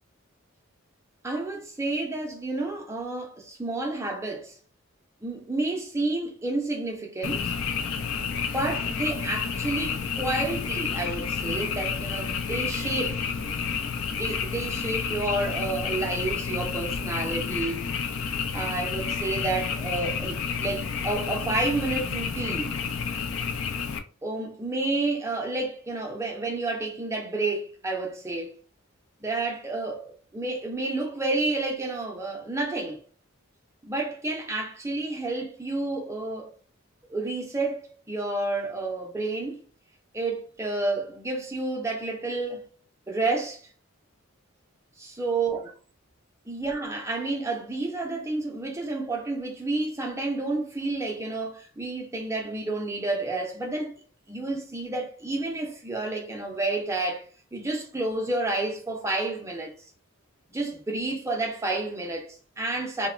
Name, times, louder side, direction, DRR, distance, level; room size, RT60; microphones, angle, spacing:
voice 1, 1.2-4.6 5.2-7.5 8.2-13.2 14.1-17.9 18.5-22.8 24.2-28.5 29.2-33.0 33.8-36.5 37.1-39.6 40.1-42.7 43.1-43.6 45.0-45.6 46.5-53.9 54.3-59.9 60.5-63.1, right 2 dB, 15° right, 0.4 m, -30 dB
Frog, 7.2-24.0, left 6 dB, 80° left, 0.4 m, -30 dB
2.9 x 2.1 x 2.3 m
head